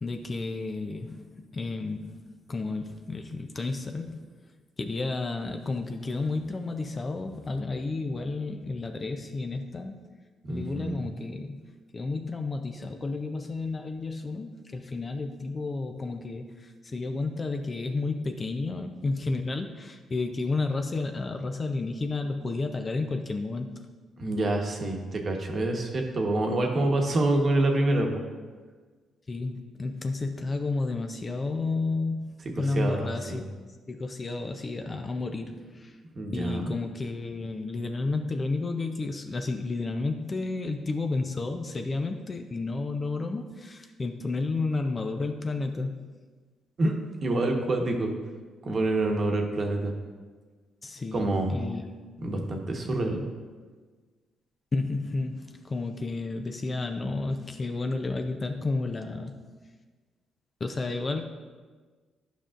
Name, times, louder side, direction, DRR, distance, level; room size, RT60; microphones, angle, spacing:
voice 1, 0.0-2.2 2.5-4.2 4.8-10.0 10.5-11.6 11.9-23.7 29.3-33.5 33.9-36.0 36.3-46.0 50.8-51.8 52.2-52.5 54.7-59.4 60.6-61.3, left 3 dB, 30° left, 5 dB, 0.6 m, -31 dB
voice 2, 10.4-11.1 24.2-28.2 32.7-33.4 36.1-36.8 46.8-46.9 47.2-48.1 48.6-49.9 51.1-51.6 52.2-53.2, right 2 dB, 45° right, 2 dB, 1.1 m, -27 dB
11.0 x 5.3 x 2.5 m, 1.4 s
cardioid pair, 90°, 0 cm